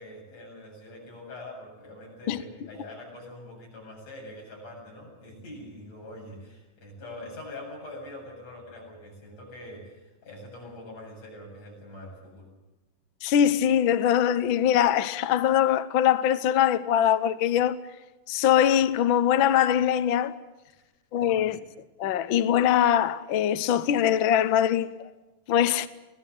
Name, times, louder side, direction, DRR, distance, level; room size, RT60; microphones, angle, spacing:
voice 1, 0.0-12.5 20.8-20.9 21.2-21.6, left 1 dB, 55° left, 9.2 m, -44 dB
voice 2, 13.2-17.8 18.3-20.4 21.1-21.6 22.0-25.1 25.5-25.9, left 10 dB, 75° left, 1.1 m, -22 dB
25.5 x 18.5 x 7.9 m
omnidirectional pair, 3.5 m